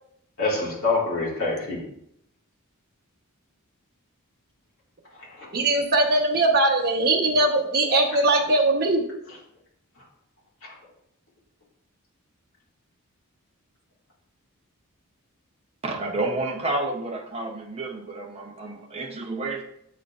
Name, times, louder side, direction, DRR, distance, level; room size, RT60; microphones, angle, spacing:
voice 1, 0.4-1.8 5.1-5.5 9.3-9.4 10.0-10.1 10.6-10.7, left 3 dB, 65° left, -6 dB, 2.1 m, -27 dB
voice 2, 5.5-9.0, right 2 dB, 45° right, 1 dB, 1.1 m, -21 dB
voice 3, 15.8-19.6, right 2 dB, 25° right, 0 dB, 0.7 m, -30 dB
9.1 x 4.4 x 2.4 m, 0.74 s
head